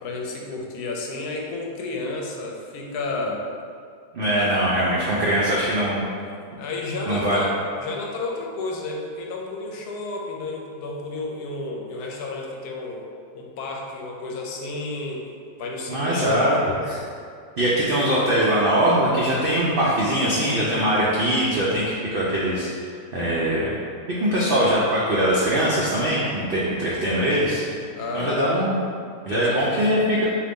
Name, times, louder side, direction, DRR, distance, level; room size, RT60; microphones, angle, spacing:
voice 1, 0.0-3.4 4.4-4.5 6.1-6.3 6.6-13.0 13.3-15.3 15.6-16.9 28.0-28.4 29.3-29.6, left 2 dB, 85° left, 0 dB, 1.1 m, -31 dB
voice 2, 4.1-6.0 7.1-7.4 15.9-16.6 16.8-17.0 17.6-23.7 24.2-27.6 28.1-28.8 29.2-30.3, equal, 80° right, -6 dB, 0.5 m, -22 dB
3.8 x 2.8 x 3.6 m, 2.2 s
omnidirectional pair, 1.7 m